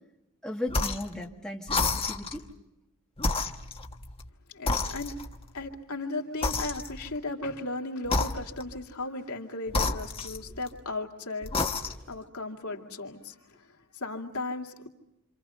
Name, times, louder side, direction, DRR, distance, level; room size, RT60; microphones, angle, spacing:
voice 1, 0.4-2.5 11.8-12.0, left 1 dB, 5° left, -2 dB, 2.1 m, -37 dB
sound 1, 0.7-1.1 1.7-2.4 3.2-4.3 4.7-5.5 6.4-7.2 8.0-8.8 9.7-10.8 11.4-12.2, left 3 dB, 25° left, 1.2 m, -30 dB
voice 2, 4.5-5.2 5.5-11.5 12.1-13.7 13.9-14.9, left 2 dB, 80° left, 1 dB, 2.5 m, -36 dB
28.0 x 27.0 x 5.7 m, 0.91 s
head